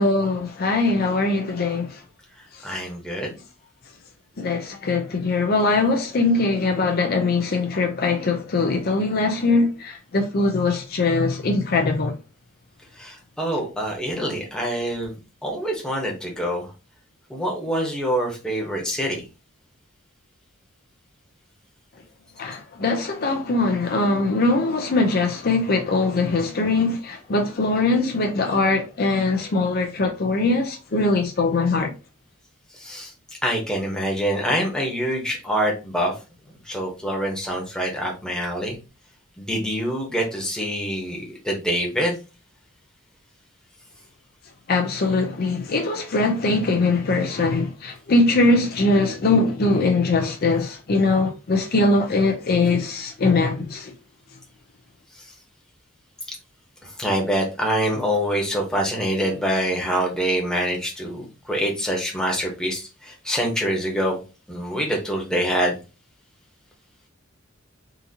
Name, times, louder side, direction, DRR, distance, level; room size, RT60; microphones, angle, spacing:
voice 1, 0.0-2.0 2.5-2.8 4.4-12.1 22.4-31.9 44.7-53.9, left 3 dB, 50° left, 0.5 m, -21 dB
voice 2, 2.6-3.4 13.0-16.7 17.3-19.2 32.8-33.1 33.4-36.1 36.7-38.8 39.4-42.1 56.3-56.4 57.0-64.2 64.5-65.7, equal, 5° left, 1.0 m, -25 dB
3.8 x 2.7 x 2.7 m
head